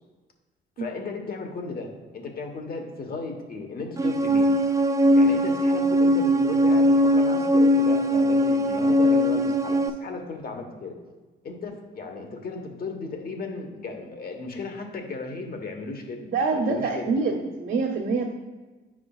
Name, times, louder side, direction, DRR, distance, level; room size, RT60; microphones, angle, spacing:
voice 1, 0.8-4.5 5.1-10.9 11.4-16.2 16.5-17.1, left 3 dB, 50° left, 4 dB, 1.2 m, -35 dB
sound 1, 4.0-9.9, equal, 15° right, 0.5 m, -20 dB
voice 2, 16.2-18.3, right 4 dB, 70° right, -5 dB, 1.2 m, -25 dB
9.5 x 4.9 x 2.4 m, 1.3 s
cardioid pair, 90°, 20 cm